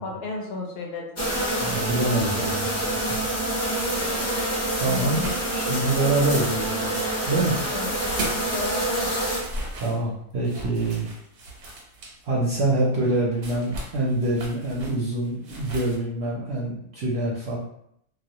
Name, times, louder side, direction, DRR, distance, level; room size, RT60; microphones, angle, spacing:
voice 1, 0.0-1.5 2.3-2.5 4.9-5.4 7.7-7.9 8.5-9.1, left 2 dB, 65° left, -1 dB, 0.6 m, -33 dB
sound 1, 1.2-9.4, right 1 dB, 15° left, 0.6 m, -26 dB
voice 2, 1.6-3.2 4.8-7.0 7.3-7.6 9.8-11.1 12.2-17.6, right 2 dB, 65° right, -6 dB, 0.7 m, -25 dB
sound 2, 4.5-6.3 6.6-8.6 9.0-16.0, right 1 dB, 90° right, 1.1 m, -38 dB
2.4 x 2.0 x 2.7 m, 0.73 s
omnidirectional pair, 1.4 m